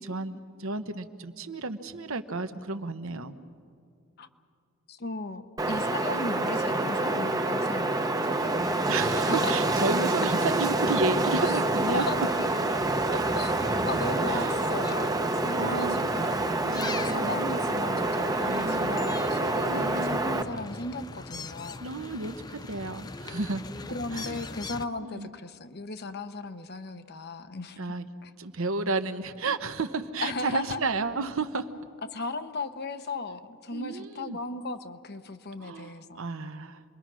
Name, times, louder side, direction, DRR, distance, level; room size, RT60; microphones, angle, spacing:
voice 1, 0.0-3.3 8.9-12.1 13.1-13.2 14.3-14.5 15.5-16.0 16.6-17.5 18.5-19.0 19.7-20.2 21.8-23.6 24.1-24.4 25.0-25.3 27.8-28.1 28.4-31.7 33.7-34.4 35.6-36.8, right 3 dB, 65° right, 9 dB, 1.0 m, -32 dB
voice 2, 4.9-8.5 9.2-9.5 11.9-12.3 13.4-13.5 13.9-16.5 17.1-21.9 23.9-27.8 28.2-28.3 30.2-30.9 32.1-36.2, left 3 dB, 45° left, 9 dB, 0.9 m, -36 dB
Wind, 5.6-20.4, right 2 dB, 15° right, 0.8 m, -27 dB
sound 1, 8.4-24.9, left 3 dB, 20° left, 0.5 m, -42 dB
28.0 x 22.0 x 6.2 m, 2.4 s
head